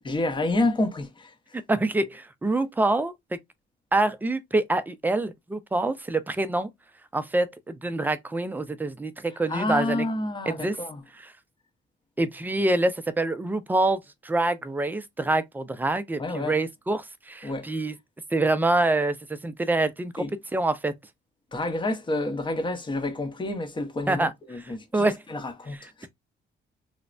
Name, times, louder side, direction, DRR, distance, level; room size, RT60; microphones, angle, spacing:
voice 1, 0.0-1.3 9.5-11.0 16.2-16.6 17.4-17.7 20.2-20.3 21.5-26.1, left 2 dB, 25° left, 0.7 m, -29 dB
voice 2, 1.7-3.1 3.9-6.7 7.1-10.1 10.5-10.8 11.2-11.3 12.2-17.9 18.3-19.2 19.4-20.2 20.5-20.9 24.1-24.3 24.6-25.2, right 2 dB, 10° right, 0.4 m, -26 dB
3.1 x 2.1 x 2.4 m
cardioid pair, 90°, 20 cm